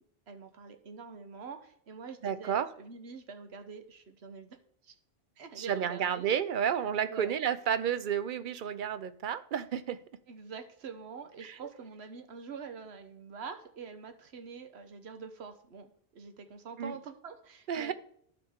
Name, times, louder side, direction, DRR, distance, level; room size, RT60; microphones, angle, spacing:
voice 1, 0.3-4.9 5.4-6.3 7.1-7.3 10.3-17.9, right 5 dB, 75° right, 8 dB, 1.2 m, -45 dB
voice 2, 2.2-2.7 5.6-10.0 11.4-11.6 16.8-16.9 17.7-17.9, right 8 dB, 60° right, 14 dB, 0.6 m, -31 dB
12.5 x 5.1 x 3.6 m, 0.64 s
omnidirectional pair, 1.1 m